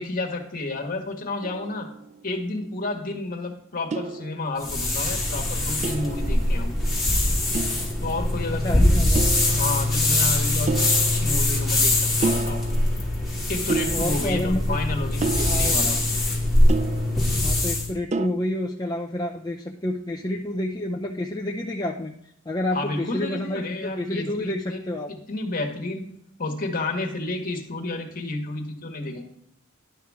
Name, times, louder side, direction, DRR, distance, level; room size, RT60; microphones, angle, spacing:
voice 1, 0.0-1.9 2.2-6.7 8.0-9.0 9.4-12.6 13.5-16.0 22.7-24.8 25.1-26.1 26.4-29.3, left 2 dB, 40° left, 2 dB, 1.6 m, -31 dB
sound 1, 1.4-2.4 3.9-4.9 5.8-7.1 7.5-8.5 9.1-10.2 10.7-11.9 12.2-13.3 13.7-14.7 15.2-17.6 18.1-18.3, right 3 dB, 35° right, 0.4 m, -32 dB
sound 2, 4.6-17.9, left 1 dB, ahead, 2.4 m, -22 dB
voice 2, 8.6-9.4 13.9-14.6 15.4-15.8 17.4-22.1 22.5-25.1, left 1 dB, 20° left, -1 dB, 0.6 m, -29 dB
11.0 x 5.9 x 3.6 m, 0.72 s
head